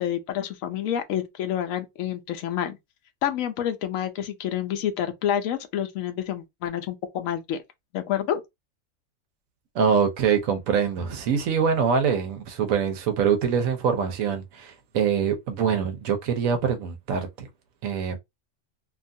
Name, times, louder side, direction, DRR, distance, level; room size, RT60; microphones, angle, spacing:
voice 1, 0.0-2.8 3.2-7.6 7.9-8.4, left 10 dB, 80° left, 1.0 m, -28 dB
voice 2, 9.7-17.5 17.8-18.2, right 7 dB, 85° right, 1.1 m, -24 dB
2.8 x 2.3 x 2.6 m
omnidirectional pair, 1.4 m